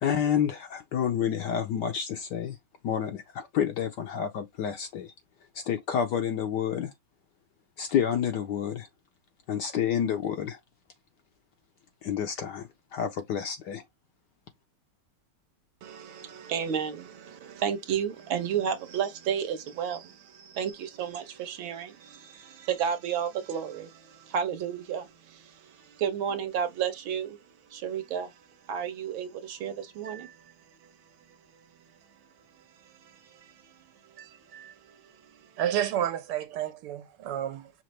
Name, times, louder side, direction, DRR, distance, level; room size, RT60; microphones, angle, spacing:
voice 1, 0.0-2.6 2.8-5.1 5.5-6.9 7.8-8.9 9.5-10.6 12.0-13.8, left 8 dB, 70° left, 1.1 m, -29 dB
voice 2, 15.8-27.4 27.7-28.3 28.6-30.4 30.8-30.9 32.8-33.7 34.1-35.5, right 8 dB, 70° right, 1.6 m, -33 dB
voice 3, 35.6-37.7, right 10 dB, 85° right, 1.7 m, -30 dB
5.9 x 2.5 x 3.2 m
omnidirectional pair, 2.4 m